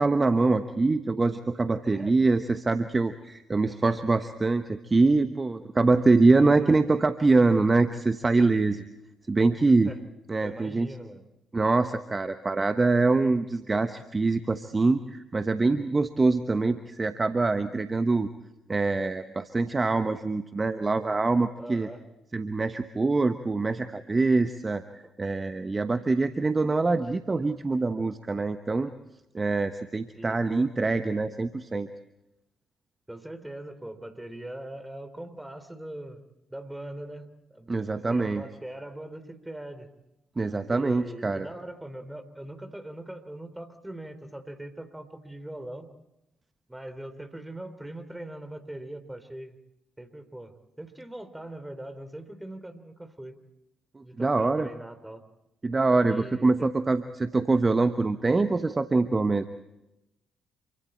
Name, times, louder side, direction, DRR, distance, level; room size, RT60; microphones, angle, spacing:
voice 1, 0.0-8.8 9.3-9.9 10.3-10.9 11.5-18.3 18.7-21.9 22.3-28.9 29.3-31.9 37.7-38.4 40.4-41.5 54.0-54.7 55.6-59.5, right 3 dB, 30° right, 10 dB, 1.1 m, -24 dB
voice 2, 1.9-2.2 6.2-6.8 9.8-10.0 10.4-11.3 21.6-22.0 25.0-25.1 30.1-30.7 33.1-36.2 36.5-37.8 38.1-39.9 40.7-45.9 46.7-49.6 50.0-53.4 54.0-55.2 56.1-56.7, right 1 dB, 10° right, 9 dB, 3.2 m, -41 dB
28.0 x 24.0 x 4.4 m, 0.91 s
figure-of-eight pair, 45°, 0 cm